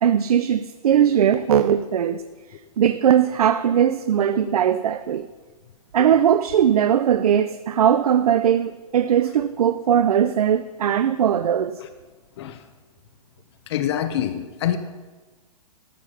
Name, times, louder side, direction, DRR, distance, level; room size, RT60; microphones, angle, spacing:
voice 1, 0.0-2.2 2.8-5.3 5.9-11.8, right 9 dB, 85° right, 0.5 m, -19 dB
voice 2, 0.9-1.3 4.5-4.6 6.0-6.1 11.8-11.9 12.4-12.6 13.7-14.8, left 11 dB, 45° left, 0.9 m, -27 dB
13.5 x 6.5 x 5.7 m
hypercardioid pair, 155°, 19 cm